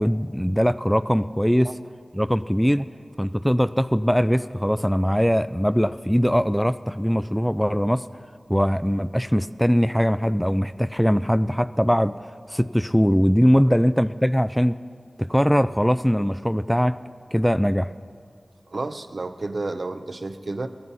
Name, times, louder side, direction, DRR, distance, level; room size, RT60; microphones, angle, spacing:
voice 1, 0.0-1.7 2.1-2.9 3.2-8.0 8.5-12.1 12.5-14.8 15.2-17.0 17.3-17.9, equal, ahead, 14 dB, 0.3 m, -21 dB
voice 2, 18.7-20.7, right 2 dB, 65° right, 9 dB, 0.6 m, -30 dB
17.0 x 12.0 x 4.1 m, 2.2 s
wide cardioid pair, 45°, 0 cm